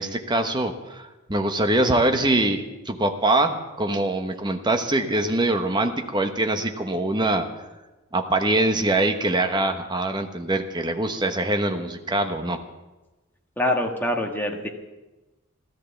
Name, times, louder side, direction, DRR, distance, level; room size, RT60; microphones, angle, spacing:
voice 1, 0.0-7.7 8.1-12.6, right 2 dB, 20° right, 6 dB, 1.1 m, -23 dB
voice 2, 13.6-14.7, left 1 dB, 10° left, 1 dB, 1.5 m, -24 dB
14.0 x 13.5 x 7.1 m, 1.1 s
head